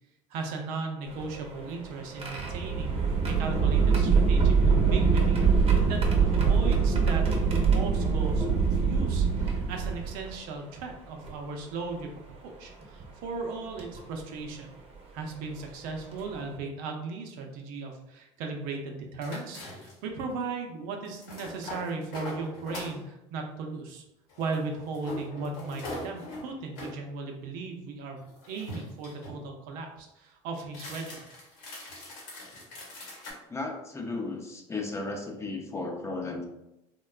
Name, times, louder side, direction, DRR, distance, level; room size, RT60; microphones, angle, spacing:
voice 1, 0.3-3.0 3.3-8.5 8.7-14.7 15.1-24.0 24.4-31.2, right 4 dB, 65° right, 3 dB, 0.6 m, -37 dB
sound 1, 1.1-10.4 11.3-11.4 12.8-13.0 13.8-14.0 15.6-15.7 16.1-16.3, right 5 dB, 35° right, 0.8 m, -24 dB
sound 2, 19.2-20.1 21.0-23.0 24.3-27.0 28.2-29.4 30.7-33.3, left 1 dB, 75° left, 1.1 m, -42 dB
voice 2, 33.5-36.4, left 3 dB, 20° left, 2 dB, 0.5 m, -35 dB
3.4 x 2.2 x 2.3 m, 0.91 s
supercardioid pair, 90°, 16 cm